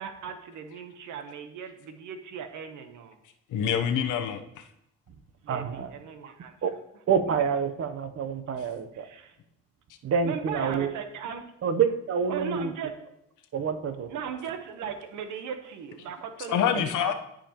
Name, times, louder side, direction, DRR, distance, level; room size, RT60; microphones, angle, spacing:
voice 1, 0.0-3.2 5.4-6.5 8.9-9.4 10.2-11.4 12.3-12.9 14.1-16.7 17.0-17.1, right 7 dB, 80° right, 8 dB, 0.9 m, -37 dB
voice 2, 3.5-4.6 16.5-17.1, left 8 dB, 80° left, 7 dB, 0.8 m, -26 dB
voice 3, 5.5-5.9 6.2-6.3 6.6-6.7 7.1-9.1 10.0-10.9 11.6-12.7 13.5-14.1 16.8-16.9, right 6 dB, 50° right, 10 dB, 0.7 m, -27 dB
12.0 x 5.1 x 2.9 m, 0.79 s
cardioid pair, 90°, 30 cm